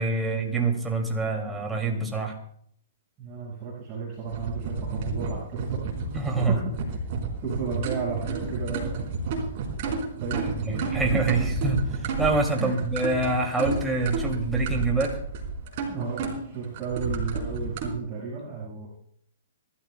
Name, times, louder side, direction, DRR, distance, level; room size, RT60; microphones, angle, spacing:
voice 1, 0.0-2.3 6.1-6.6 10.3-11.8 12.2-15.1, right 3 dB, 5° right, 0 dB, 2.4 m, -26 dB
voice 2, 3.2-6.1 6.5-6.6 6.8-7.0 7.4-9.1 10.2-11.2 12.5-12.8 15.9-18.9, right 5 dB, 25° right, -6 dB, 5.3 m, -34 dB
sound 1, 4.3-17.9, right 3 dB, 45° right, 3.9 m, -31 dB
26.5 x 13.0 x 2.2 m, 0.65 s
hypercardioid pair, 150°, 0 cm